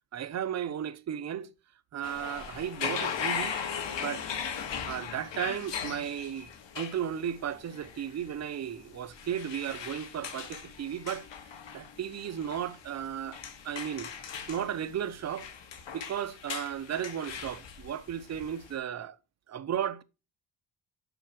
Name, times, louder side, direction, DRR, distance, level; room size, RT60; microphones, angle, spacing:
voice 1, 0.1-1.5 1.9-3.6 4.0-4.3 4.8-6.5 6.7-11.2 11.7-13.4 13.6-14.1 14.5-15.5 15.9-19.2 19.5-20.0, right 9 dB, 35° right, 0.6 m, -34 dB
sound 1, 2.0-18.7, left 7 dB, 70° left, 1.8 m, -39 dB
6.9 x 5.9 x 5.8 m
wide cardioid pair, 145°, 45 cm